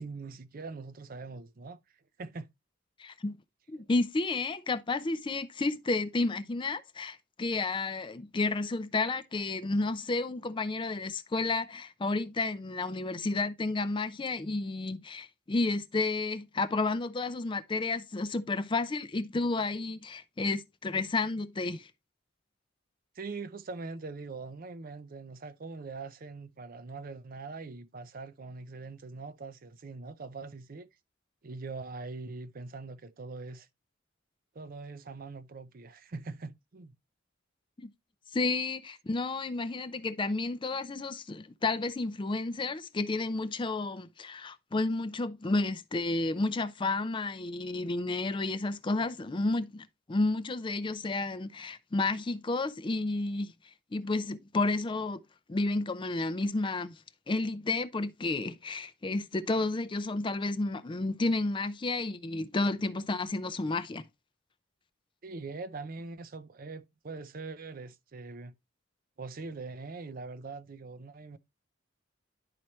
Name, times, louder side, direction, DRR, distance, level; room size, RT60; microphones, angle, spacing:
voice 1, 0.0-1.8 2.2-2.5 23.2-30.9 31.4-33.7 34.5-37.0 65.2-68.5 69.2-71.4, right 3 dB, 45° right, 0.5 m, -42 dB
voice 2, 3.0-3.4 3.7-21.9 37.8-37.9 38.3-53.5 53.9-55.2 55.5-57.0 57.3-64.0, left 3 dB, 25° left, 0.4 m, -31 dB
11.0 x 4.3 x 3.1 m
head